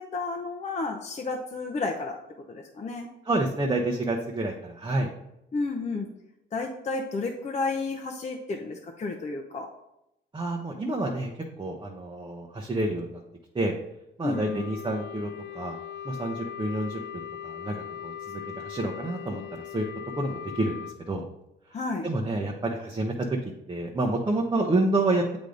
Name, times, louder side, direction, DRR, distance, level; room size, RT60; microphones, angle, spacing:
voice 1, 0.0-2.2 2.5-3.1 5.5-6.1 6.5-9.7 14.2-14.6 21.7-22.1, left 3 dB, 35° left, 1 dB, 0.7 m, -31 dB
voice 2, 3.3-5.1 10.3-11.3 11.6-13.2 13.5-13.7 14.2-15.8 16.0-17.8 18.0-19.4 19.7-19.8 20.2-20.7 21.1-21.2 22.0-23.1 23.7-25.2, right 2 dB, 20° right, 0 dB, 0.8 m, -28 dB
Wind instrument woodwind instrument, 14.3-21.0, left 10 dB, 65° left, 0.4 m, -39 dB
8.1 x 3.4 x 3.9 m, 0.85 s
cardioid pair, 90°, 20 cm